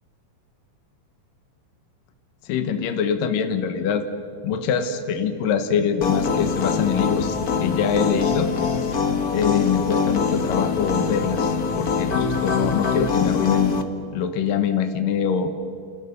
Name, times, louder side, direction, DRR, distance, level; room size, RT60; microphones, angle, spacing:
voice 1, 2.4-4.1 4.4-8.5 9.3-13.7 14.1-15.5, left 7 dB, 70° left, 8 dB, 2.9 m, -24 dB
sound 1, 6.0-13.8, left 5 dB, 50° left, 1.1 m, -24 dB
29.5 x 29.5 x 5.4 m, 2.6 s
omnidirectional pair, 4.2 m